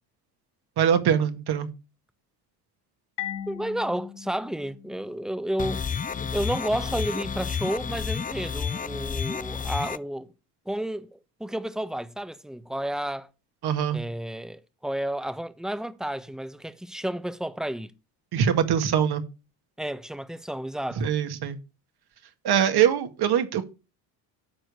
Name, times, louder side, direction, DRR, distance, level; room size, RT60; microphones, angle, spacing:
voice 1, 0.8-1.7 13.6-14.0 18.3-19.2 21.0-21.6 22.4-23.6, right 9 dB, 55° right, 2.0 m, -23 dB
Marimba xylophone, 3.2-5.8, left 10 dB, 60° left, 3.6 m, -39 dB
voice 2, 3.5-5.8 6.3-10.3 10.7-13.3 13.9-17.9 19.8-21.1, right 1 dB, ahead, 1.0 m, -31 dB
sound 1, 5.6-10.0, left 6 dB, 20° left, 0.5 m, -31 dB
12.5 x 4.6 x 6.8 m
hypercardioid pair, 70°, 46 cm